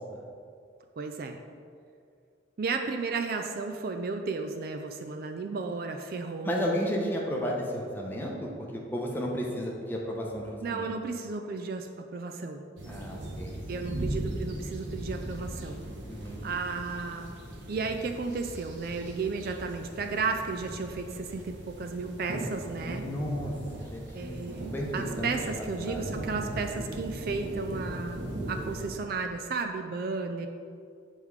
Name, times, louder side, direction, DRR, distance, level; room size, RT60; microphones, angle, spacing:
voice 1, 1.0-1.4 2.6-6.8 10.6-12.6 13.7-15.8 16.4-17.3 17.7-23.0 24.1-30.5, right 4 dB, 50° right, 5 dB, 0.4 m, -33 dB
voice 2, 6.4-10.9 12.9-13.5 16.1-16.4 22.8-23.5 23.8-24.4 24.7-24.9 25.2-25.3 25.9-26.0, equal, 10° left, -2 dB, 0.8 m, -33 dB
sound 1, 12.8-28.9, right 1 dB, 65° right, 1.0 m, -38 dB
7.4 x 3.6 x 4.7 m, 2.2 s
head